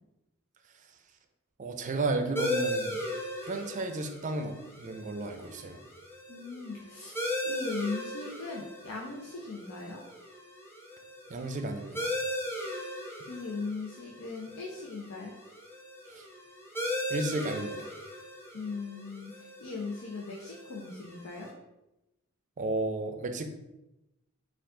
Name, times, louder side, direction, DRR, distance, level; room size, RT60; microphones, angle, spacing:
voice 1, 1.6-3.0 3.4-5.8 11.3-12.1 16.1-16.2 17.1-17.9 22.6-23.4, right 2 dB, 40° right, 6 dB, 0.4 m, -33 dB
sound 1, 2.4-21.5, left 1 dB, 10° left, 0.6 m, -38 dB
voice 2, 6.3-10.0 13.3-15.3 18.5-19.3 19.6-21.5, left 4 dB, 85° left, -1 dB, 0.6 m, -38 dB
4.5 x 2.4 x 3.7 m, 0.94 s
head